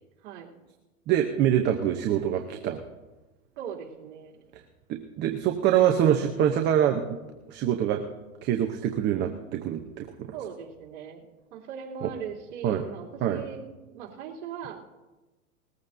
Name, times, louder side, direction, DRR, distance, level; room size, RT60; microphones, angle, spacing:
voice 1, 0.2-0.5 3.6-4.4 10.3-11.2 11.5-14.8, right 8 dB, 50° right, -4 dB, 3.0 m, -39 dB
voice 2, 1.1-2.8 4.9-7.0 7.5-8.0 8.4-10.3 12.0-12.1 12.6-12.8 13.2-13.4, right 10 dB, 25° right, 4 dB, 0.8 m, -25 dB
20.0 x 15.0 x 2.7 m, 1.1 s
hypercardioid pair, 135°, 44 cm